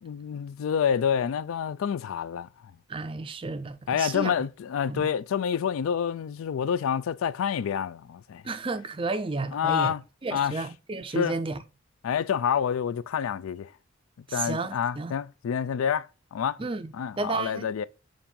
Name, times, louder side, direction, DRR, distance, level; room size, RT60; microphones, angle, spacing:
voice 1, 0.0-2.5 3.9-8.4 9.5-10.0 10.3-10.6 11.1-11.3 12.0-13.7 14.3-16.6 16.9-17.9, left 8 dB, 85° left, 0.3 m, -28 dB
voice 2, 2.9-4.3 4.9-5.1 8.4-9.9 10.2-11.6 14.3-15.1 16.6-17.7, right 3 dB, 25° right, 0.4 m, -32 dB
7.1 x 2.6 x 5.3 m
head